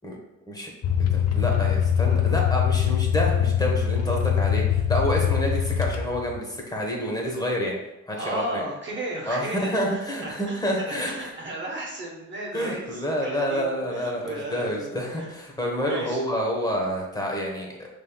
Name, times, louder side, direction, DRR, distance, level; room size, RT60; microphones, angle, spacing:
sound 1, 0.8-6.4, left 9 dB, 55° left, 0.5 m, -23 dB
voice 1, 1.0-7.7 8.1-8.6 9.3-11.3 12.5-17.9, equal, 15° left, -1 dB, 1.1 m, -28 dB
voice 2, 8.2-13.6 13.9-14.9 15.2-15.3 15.8-16.2, right 1 dB, 40° right, -3 dB, 1.1 m, -34 dB
5.3 x 3.3 x 2.3 m, 0.98 s
cardioid pair, 90°, 30 cm